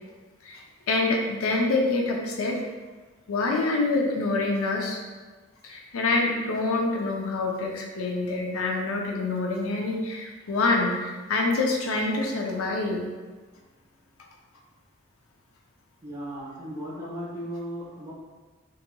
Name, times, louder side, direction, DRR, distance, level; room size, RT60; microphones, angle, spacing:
voice 1, 0.9-2.6 3.3-5.0 5.6-13.0, left 3 dB, 85° left, 0 dB, 0.5 m, -26 dB
voice 2, 16.0-18.1, equal, 15° right, -8 dB, 0.9 m, -36 dB
3.9 x 2.8 x 2.2 m, 1.4 s
head